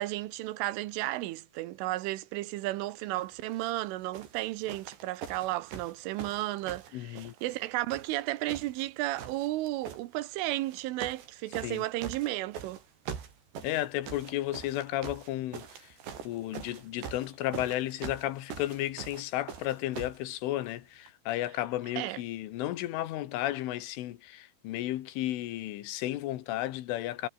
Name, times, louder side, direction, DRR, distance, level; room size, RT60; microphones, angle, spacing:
voice 1, 0.0-12.8 22.0-22.2, right 17 dB, 90° right, 3.6 m, -33 dB
sound 1, 3.5-3.8 4.1-7.6 7.9-8.9 9.2-10.0 10.6-11.3 11.5-20.2 21.1-21.2, right 7 dB, 65° right, 5.8 m, -43 dB
voice 2, 6.9-7.3 11.6-11.8 13.6-27.3, left 14 dB, 90° left, 4.0 m, -33 dB
omnidirectional pair, 5.5 m